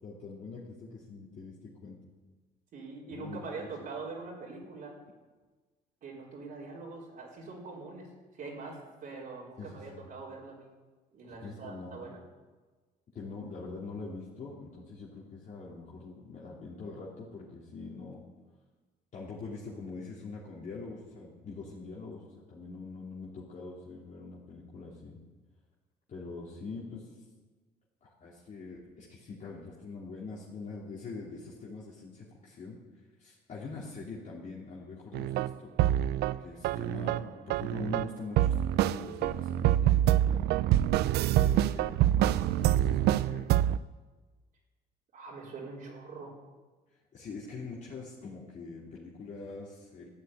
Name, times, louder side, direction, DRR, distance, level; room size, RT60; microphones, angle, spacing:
voice 1, 0.0-2.0 3.1-3.7 9.6-10.1 11.4-12.1 13.1-18.2 19.1-25.2 26.1-27.2 28.0-32.8 33.2-35.7 36.4-40.4 41.4-43.7 47.1-50.1, left 3 dB, 45° left, -5 dB, 3.0 m, -43 dB
voice 2, 2.7-5.0 6.0-8.1 8.4-10.7 11.1-12.2 40.9-41.2 45.1-46.3, right 4 dB, 55° right, -4 dB, 4.3 m, -43 dB
sound 1, 35.1-36.4 36.6-38.1 38.4-43.8, right 12 dB, 75° right, 0.4 m, -26 dB
13.5 x 8.7 x 8.7 m, 1.3 s
cardioid pair, 110°, 17 cm